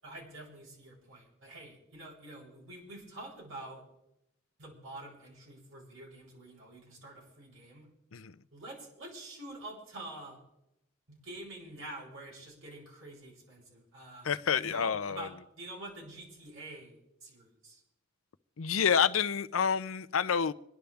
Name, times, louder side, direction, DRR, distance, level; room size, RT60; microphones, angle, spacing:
voice 1, 0.0-3.8 4.6-7.9 8.5-10.4 11.1-17.8, right 1 dB, 80° right, -3 dB, 7.7 m, -47 dB
voice 2, 14.2-15.3 18.6-20.5, left 7 dB, 80° left, 13 dB, 0.6 m, -28 dB
26.5 x 11.5 x 3.5 m, 0.84 s
head